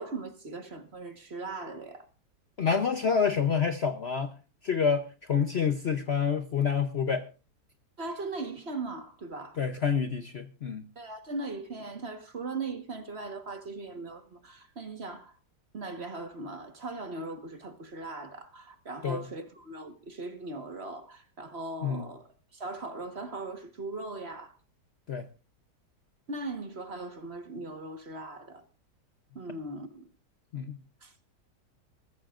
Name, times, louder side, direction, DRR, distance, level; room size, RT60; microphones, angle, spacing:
voice 1, 0.0-2.1 8.0-9.6 10.9-15.3 15.7-24.5 26.3-28.6 29.3-30.1 31.0-31.1, right 3 dB, 40° right, 1.6 m, -39 dB
voice 2, 2.6-4.3 4.6-7.3 9.6-10.8 19.0-19.2 21.8-22.0 25.1-25.2 30.5-30.8, left 6 dB, 50° left, 0.9 m, -28 dB
21.5 x 14.0 x 2.5 m
omnidirectional pair, 1.9 m